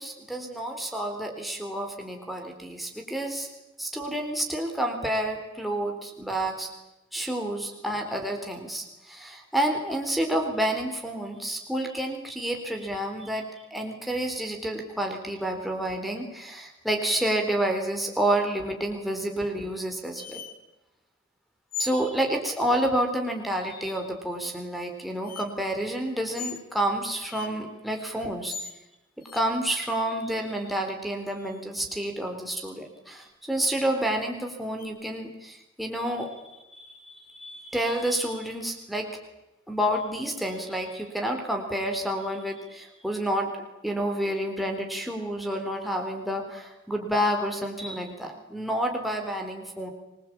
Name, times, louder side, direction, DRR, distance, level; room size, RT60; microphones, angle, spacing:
voice 1, 0.0-3.5 3.8-6.7 7.1-13.4 13.7-20.4 21.8-28.5 29.2-36.3 36.7-39.1 39.7-43.5 43.8-49.9, right 1 dB, ahead, 1 dB, 3.8 m, -29 dB
sound 1, 20.2-20.5 21.7-22.1 24.3-24.4 25.2-25.5 26.3-26.6 27.3-27.5 28.5-28.8 29.2-29.4 31.3-31.9 34.8-34.9, left 5 dB, 50° left, 2.9 m, -37 dB
25.5 x 21.0 x 8.7 m, 0.97 s
head